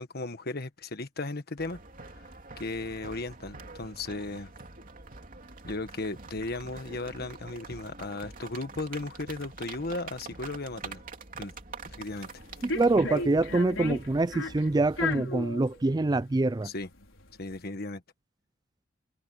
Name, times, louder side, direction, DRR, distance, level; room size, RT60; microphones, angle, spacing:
voice 1, 0.0-2.3 2.6-4.5 5.6-11.0 11.4-11.5 11.8-12.3 16.6-16.9 17.4-18.0, left 2 dB, 50° left, 1.5 m, -36 dB
sound 1, 1.6-15.2, right 3 dB, 45° right, 3.1 m, -46 dB
sound 2, 12.0-17.6, left 3 dB, 85° left, 5.4 m, -35 dB
voice 2, 12.6-16.7, right 2 dB, 20° right, 0.4 m, -25 dB
head